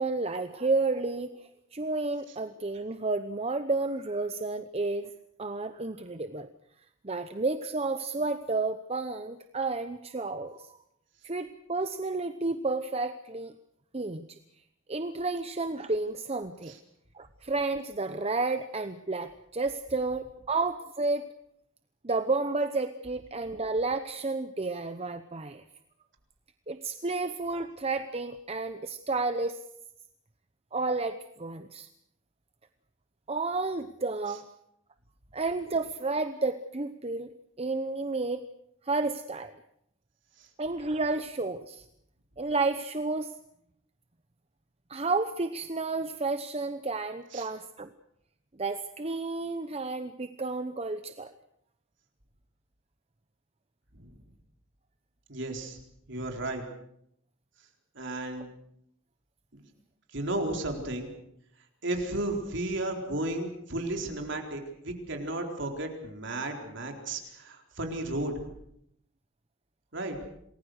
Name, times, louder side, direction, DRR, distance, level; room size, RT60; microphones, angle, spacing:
voice 1, 0.0-5.1 5.4-6.5 7.0-10.7 11.2-13.5 13.9-14.4 14.9-16.8 17.1-21.3 22.0-25.6 26.7-29.6 30.7-31.9 33.3-34.5 35.3-37.3 37.6-38.5 38.8-39.5 40.6-41.9 42.4-43.3 44.9-47.9 48.6-51.3, right 3 dB, 30° right, 9 dB, 0.9 m, -31 dB
voice 2, 55.3-55.8 56.1-56.6 58.0-58.5 59.5-59.6 60.1-61.1 61.8-68.3 69.9-70.2, right 1 dB, 60° right, 3 dB, 4.1 m, -33 dB
27.5 x 20.5 x 6.5 m, 0.75 s
head